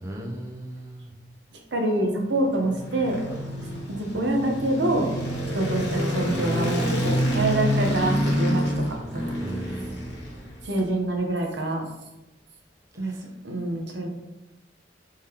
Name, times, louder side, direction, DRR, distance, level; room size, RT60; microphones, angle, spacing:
voice 1, 0.0-1.1 9.4-10.1 13.0-13.3, right 1 dB, 15° right, -1 dB, 0.5 m, -37 dB
voice 2, 1.7-3.2 3.9-5.1 5.5-8.6 8.9-9.8 10.6-11.8 13.0-13.1 13.4-14.1, right 1 dB, 75° right, 2 dB, 0.8 m, -26 dB
sound 1, 2.3-10.8, equal, 75° left, 1.2 m, -27 dB
3.7 x 3.5 x 2.8 m, 0.99 s
head